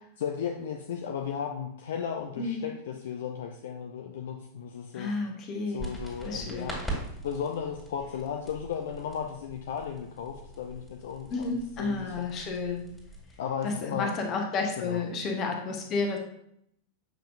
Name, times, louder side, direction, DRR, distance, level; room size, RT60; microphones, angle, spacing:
voice 1, 0.2-5.1 5.7-6.7 7.2-12.2 13.4-14.1 14.8-15.0, left 8 dB, 60° left, 3 dB, 0.5 m, -35 dB
voice 2, 4.9-5.9 6.2-6.7 11.3-12.9 13.6-16.2, left 3 dB, 35° left, 2 dB, 1.2 m, -31 dB
sound 1, 5.8-13.4, right 2 dB, 5° left, 2.2 m, -42 dB
7.4 x 5.2 x 2.6 m, 0.74 s
figure-of-eight pair, 90°, 0 cm